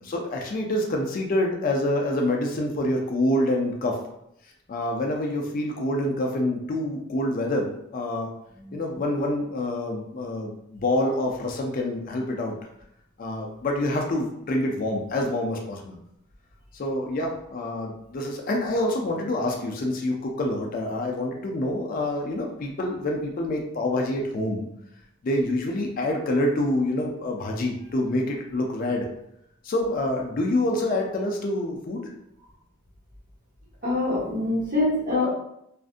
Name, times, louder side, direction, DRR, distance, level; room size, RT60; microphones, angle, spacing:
voice 1, 0.0-4.0 4.7-8.3 8.7-12.6 13.2-16.0 16.7-24.7 25.2-29.1 29.6-32.0, left 1 dB, 45° left, 1 dB, 0.4 m, -26 dB
voice 2, 33.8-35.3, left 2 dB, 45° right, -7 dB, 1.2 m, -24 dB
2.5 x 2.5 x 2.4 m, 0.77 s
head